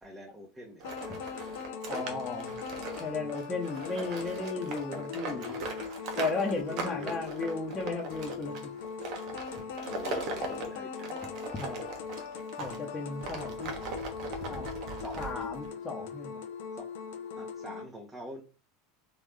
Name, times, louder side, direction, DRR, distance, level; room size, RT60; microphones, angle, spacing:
voice 1, 0.0-0.8 6.1-7.3 9.8-11.3 15.0-15.3 16.7-16.9 17.4-18.4, equal, 15° right, -1 dB, 1.4 m, -46 dB
sound 1, 0.8-17.8, left 6 dB, 60° left, 0.8 m, -40 dB
sound 2, 0.8-12.8 13.2-15.7, right 3 dB, 50° right, 1.4 m, -40 dB
voice 2, 1.9-2.5 3.0-5.6 6.2-8.7 11.5-11.8 12.6-13.7 14.5-14.7 15.2-16.3, left 3 dB, 20° left, -3 dB, 1.2 m, -35 dB
4.1 x 3.6 x 3.5 m, 0.33 s
figure-of-eight pair, 80°, 0 cm